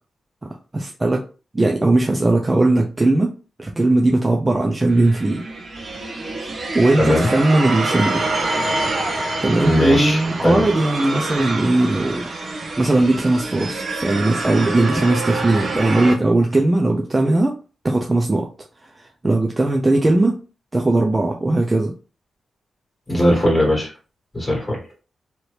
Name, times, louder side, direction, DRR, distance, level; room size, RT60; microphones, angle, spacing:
voice 1, 0.7-1.2 1.5-3.3 3.6-5.5 6.7-8.2 9.4-12.2 12.8-17.6 17.8-18.5 19.2-20.4 20.7-21.9, right 2 dB, 20° right, 1 dB, 0.4 m, -18 dB
sound 1, 4.9-16.1, right 2 dB, 50° right, 0.9 m, -26 dB
voice 2, 7.0-7.3 9.6-10.7 23.1-23.9 24.3-24.8, left 1 dB, 20° left, -2 dB, 1.5 m, -19 dB
2.9 x 2.6 x 3.2 m, 0.35 s
wide cardioid pair, 120°, 0 cm